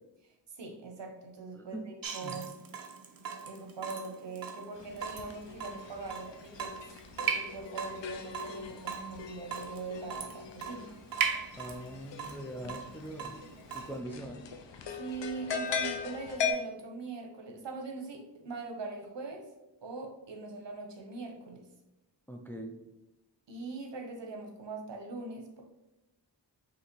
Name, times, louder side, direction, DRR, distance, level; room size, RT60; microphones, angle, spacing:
voice 1, 0.5-1.8 2.1-2.5 3.4-6.9 7.2-10.9 15.0-19.5 19.8-21.6 23.5-25.6, right 3 dB, 75° right, 2 dB, 0.9 m, -42 dB
Water tap faucet / Drip, 2.0-14.0, right 6 dB, 55° right, 0.6 m, -39 dB
sound 1, 4.7-16.5, left 7 dB, 80° left, 0.6 m, -40 dB
voice 2, 11.6-13.3 13.7-14.5 22.3-22.8, right 1 dB, 5° left, 2 dB, 0.3 m, -42 dB
5.4 x 2.8 x 3.0 m, 0.97 s
wide cardioid pair, 90°, 43 cm